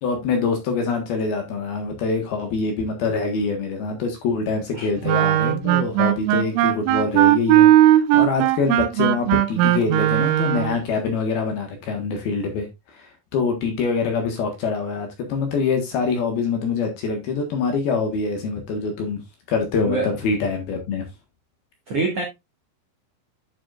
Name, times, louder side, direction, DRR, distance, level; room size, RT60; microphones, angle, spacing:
voice 1, 0.0-19.2 19.5-21.0, left 4 dB, 65° left, 2.8 m, -25 dB
Wind instrument woodwind instrument, 5.0-10.8, right 14 dB, 90° right, 3.3 m, -18 dB
voice 2, 19.8-20.2 21.9-22.2, right 3 dB, 65° right, 1.5 m, -25 dB
11.5 x 6.1 x 2.4 m
omnidirectional pair, 5.8 m